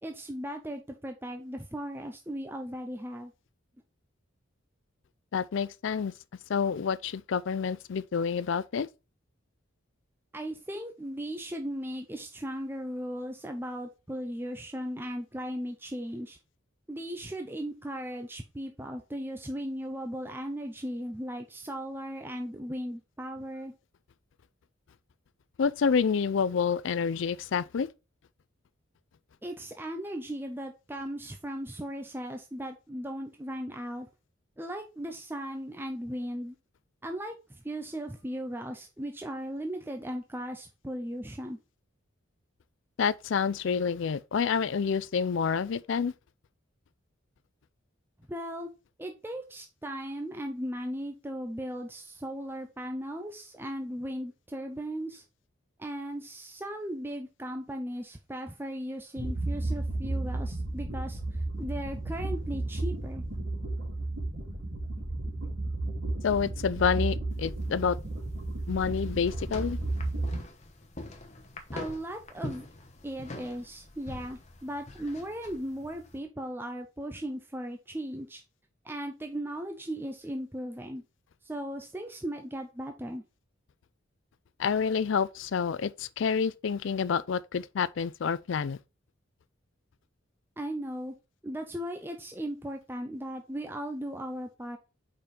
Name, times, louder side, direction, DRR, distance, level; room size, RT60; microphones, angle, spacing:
voice 1, 0.0-3.3 10.3-16.4 16.9-23.7 29.4-34.1 34.6-36.6 37.0-41.6 48.3-48.7 49.0-55.2 55.8-63.2 71.7-72.7 73.0-78.4 78.8-81.0 81.4-83.2 90.6-91.1 91.4-94.8, equal, 10° right, 0.5 m, -37 dB
voice 2, 5.3-6.1 6.5-8.9 25.6-27.9 43.0-46.1 66.2-68.0 68.7-69.8 84.6-88.8, left 6 dB, 60° left, 0.4 m, -28 dB
sound 1, 59.2-70.4, right 2 dB, 70° right, 3.2 m, -33 dB
sound 2, 67.3-76.2, left 2 dB, 35° left, 1.0 m, -45 dB
5.1 x 4.4 x 5.2 m
head